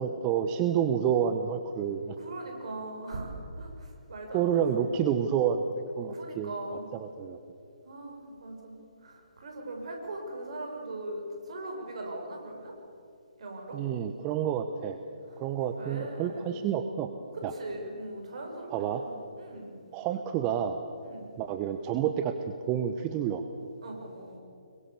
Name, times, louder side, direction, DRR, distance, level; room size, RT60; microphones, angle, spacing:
voice 1, 0.0-2.2 4.3-6.5 6.9-7.4 13.7-15.0 15.4-17.1 17.4-17.5 18.7-19.1 19.9-20.8 21.4-22.3 22.7-23.4, right 8 dB, 25° right, 8 dB, 1.0 m, -29 dB
voice 2, 2.2-4.9 6.1-6.8 7.8-12.7 13.4-13.8 15.3-16.6 17.3-19.7 21.0-21.3 23.8-24.4, right 2 dB, 60° right, 1 dB, 6.3 m, -40 dB
25.5 x 23.0 x 7.2 m, 2.6 s
figure-of-eight pair, 140°, 4 cm